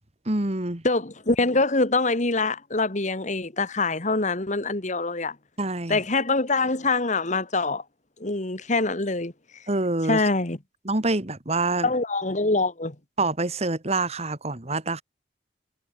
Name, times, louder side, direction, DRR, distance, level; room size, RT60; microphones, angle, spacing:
voice 1, 0.3-0.8 5.6-6.0 9.7-10.2 10.9-11.9 13.2-15.0, right 2 dB, 35° right, 2.0 m, -26 dB
voice 2, 0.8-5.4 5.9-7.8 8.2-9.3 10.1-10.6 11.8-13.0, left 3 dB, 40° left, 1.9 m, -24 dB
head